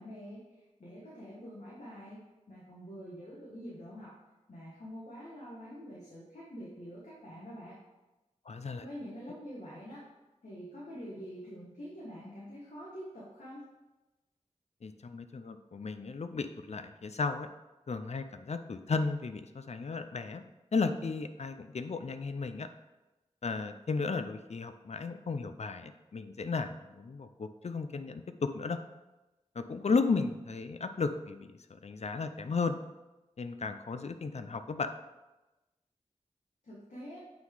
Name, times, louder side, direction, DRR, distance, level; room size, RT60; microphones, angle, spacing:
voice 1, 0.0-2.2 2.5-4.2 4.5-7.8 8.8-10.1 10.4-13.6 36.6-37.2, equal, 75° left, -6 dB, 1.5 m, -46 dB
voice 2, 8.5-8.8 14.8-17.5 17.9-20.4 20.7-22.7 23.4-28.8 29.6-32.7 33.4-34.9, left 4 dB, 60° left, 9 dB, 0.5 m, -34 dB
8.7 x 3.9 x 3.8 m, 1.1 s
wide cardioid pair, 70°, 13 cm